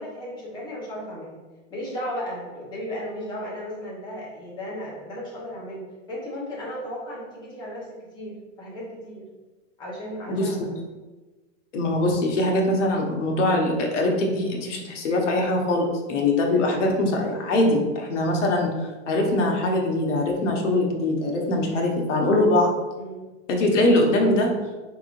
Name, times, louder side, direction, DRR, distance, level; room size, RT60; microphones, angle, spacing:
voice 1, 0.0-1.4 1.7-9.3 9.8-10.8 22.9-23.3, equal, 10° left, -5 dB, 0.8 m, -35 dB
voice 2, 11.7-18.7 19.1-22.7 23.5-24.6, left 1 dB, 80° left, 1 dB, 1.1 m, -22 dB
4.6 x 3.6 x 2.5 m, 1.2 s
supercardioid pair, 165°, 36 cm